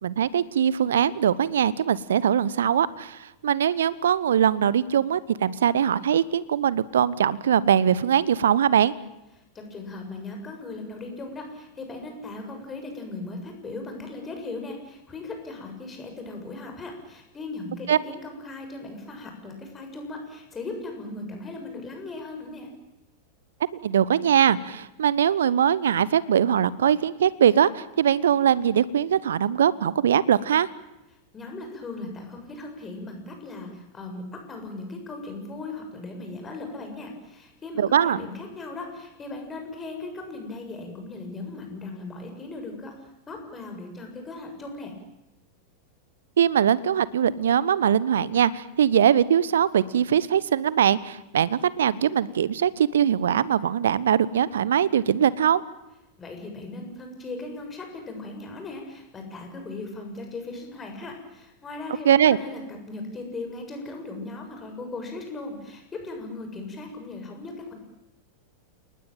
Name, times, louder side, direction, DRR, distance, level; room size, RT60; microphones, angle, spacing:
voice 1, 0.0-8.9 17.9-18.0 23.8-30.7 37.8-38.2 46.4-55.6 62.0-62.4, right 9 dB, 65° right, 20 dB, 1.0 m, -21 dB
voice 2, 9.6-22.7 31.3-44.9 56.2-67.7, left 2 dB, 20° left, 3 dB, 7.0 m, -38 dB
29.5 x 19.5 x 9.1 m, 0.94 s
figure-of-eight pair, 90°, 0 cm